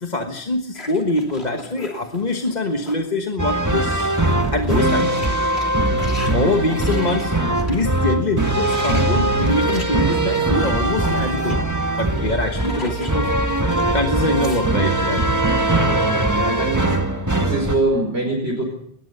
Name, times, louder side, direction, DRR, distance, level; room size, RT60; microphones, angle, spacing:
voice 1, 0.0-4.1 4.5-5.2 6.3-7.3 7.6-11.6 12.0-13.3 13.9-15.3, left 2 dB, 45° left, 4 dB, 1.5 m, -24 dB
sound 1, 0.7-3.1 3.5-7.8 8.4-13.9 14.2-15.3, left 1 dB, 85° left, 3.4 m, -39 dB
sound 2, 3.4-17.7, right 2 dB, 15° right, 1.7 m, -21 dB
voice 2, 15.6-17.0 17.4-18.6, right 2 dB, 85° right, -1 dB, 5.4 m, -24 dB
20.5 x 20.0 x 6.8 m, 0.67 s
omnidirectional pair, 1.1 m